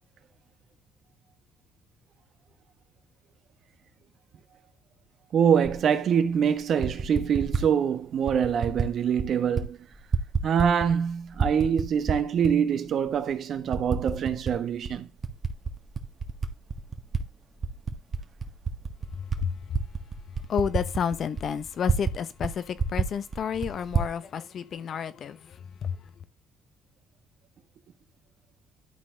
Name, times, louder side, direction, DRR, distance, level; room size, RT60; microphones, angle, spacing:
voice 1, 5.3-9.8 10.4-15.1, right 7 dB, 60° right, 1.2 m, -24 dB
Typing, 5.6-5.8 6.6-7.7 8.3-8.9 9.2-9.7 9.9-11.0 11.3-12.5 13.1-13.2 13.7-14.6 14.9-17.2 17.6-22.2 22.4-22.5 22.8-24.1, right 5 dB, 40° right, 1.6 m, -29 dB
voice 2, 20.5-25.4 25.8-25.9, left 7 dB, 55° left, 0.9 m, -30 dB
12.0 x 4.3 x 3.8 m
supercardioid pair, 75°, 0 cm